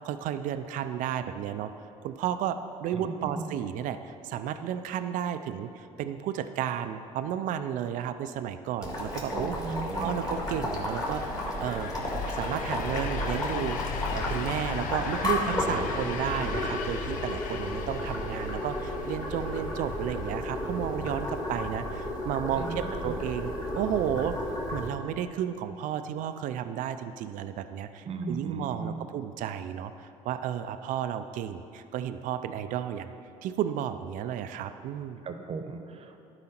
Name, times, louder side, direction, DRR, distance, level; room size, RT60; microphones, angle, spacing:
voice 1, 0.0-1.7 2.0-11.2 11.6-11.9 12.2-22.7 23.0-24.4 24.7-33.1 33.4-35.2, right 10 dB, 60° right, 10 dB, 0.4 m, -33 dB
voice 2, 2.9-3.6 9.3-10.2 22.5-23.2 28.0-29.0 35.2-36.2, right 4 dB, 40° right, 7 dB, 0.9 m, -36 dB
Boiling, 8.8-24.9, left 1 dB, 25° left, 2.1 m, -33 dB
sound 1, 9.7-21.6, left 6 dB, 60° left, 0.6 m, -39 dB
12.0 x 4.9 x 4.4 m, 2.6 s
supercardioid pair, 70°, 15 cm